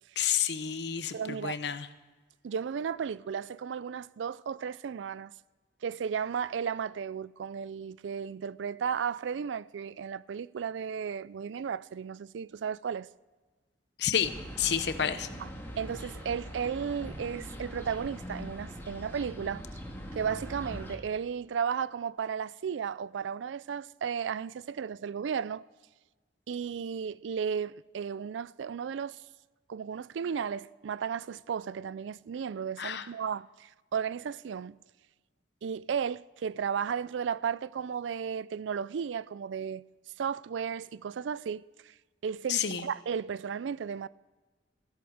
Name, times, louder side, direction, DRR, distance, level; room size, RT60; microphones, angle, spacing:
voice 1, 0.2-1.9 14.0-14.3 14.6-15.3 32.8-33.1 42.5-42.8, left 8 dB, 70° left, 0.8 m, -30 dB
voice 2, 1.1-1.6 2.4-5.3 5.8-13.1 15.4-15.5 15.8-19.6 20.1-25.6 26.5-29.2 29.7-34.8 35.6-39.8 40.2-41.9 42.2-44.1, right 7 dB, 90° right, 0.4 m, -34 dB
sound 1, 14.2-21.0, equal, 15° left, 1.8 m, -42 dB
14.0 x 11.5 x 6.4 m
head